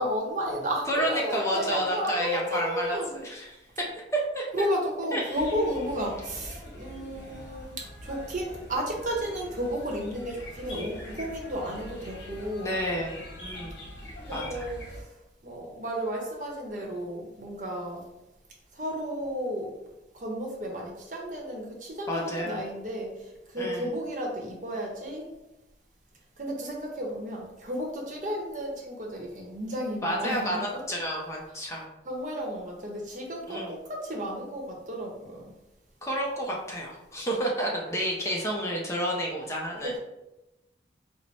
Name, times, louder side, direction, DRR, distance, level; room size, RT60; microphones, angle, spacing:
voice 1, 0.0-3.2 4.5-12.8 14.3-15.1 15.4-18.1 18.7-19.7 20.1-25.3 26.4-30.9 31.5-35.5 39.8-40.0, equal, 45° right, 0 dB, 0.9 m, -33 dB
voice 2, 0.9-3.6 4.1-4.7 5.1-5.4 12.6-13.7 14.3-14.6 22.1-22.6 23.6-23.9 30.0-31.9 33.5-33.7 36.0-39.9, equal, 15° left, -2 dB, 0.5 m, -30 dB
sound 1, 5.4-15.0, left 1 dB, 85° left, 0.9 m, -43 dB
4.4 x 2.1 x 4.0 m, 0.95 s
head